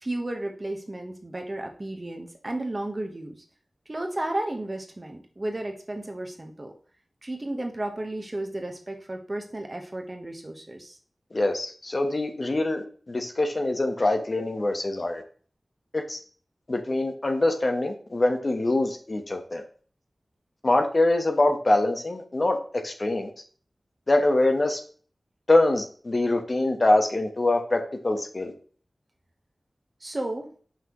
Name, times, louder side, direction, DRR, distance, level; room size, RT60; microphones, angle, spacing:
voice 1, 0.0-3.4 3.9-6.7 7.2-11.0 30.0-30.5, right 1 dB, 35° right, 3 dB, 1.1 m, -33 dB
voice 2, 11.3-15.2 15.9-16.2 16.7-19.6 20.6-22.6 22.8-23.3 24.1-24.8 25.5-28.5, left 2 dB, 50° left, 4 dB, 1.0 m, -24 dB
5.8 x 5.6 x 3.0 m, 0.42 s
wide cardioid pair, 60°, 0 cm